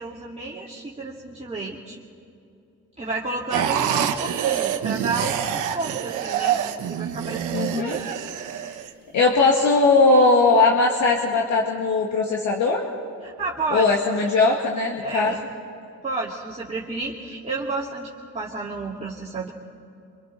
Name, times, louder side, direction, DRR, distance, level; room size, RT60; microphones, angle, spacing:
voice 1, 0.0-2.0 3.0-6.6 6.9-8.2 13.2-14.2 15.0-15.4 16.0-19.5, right 3 dB, 20° right, -5 dB, 2.4 m, -31 dB
sound 1, 3.5-8.9, right 9 dB, 85° right, 1.3 m, -26 dB
voice 2, 7.5-8.0 9.1-12.9 13.7-15.3, left 3 dB, 70° left, -1 dB, 2.2 m, -19 dB
27.0 x 25.5 x 4.2 m, 2.6 s
cardioid pair, 90°, 30 cm